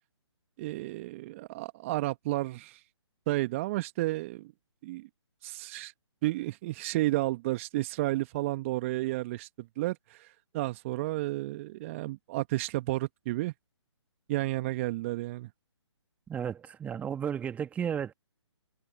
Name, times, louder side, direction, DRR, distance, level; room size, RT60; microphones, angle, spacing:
voice 1, 0.6-2.8 3.3-4.5 4.8-5.1 5.4-5.9 6.2-13.5 14.3-15.5, right 18 dB, 25° right, 1.5 m, -32 dB
voice 2, 16.3-18.1, right 8 dB, 10° right, 1.8 m, -33 dB
figure-of-eight pair, 140°, 15 cm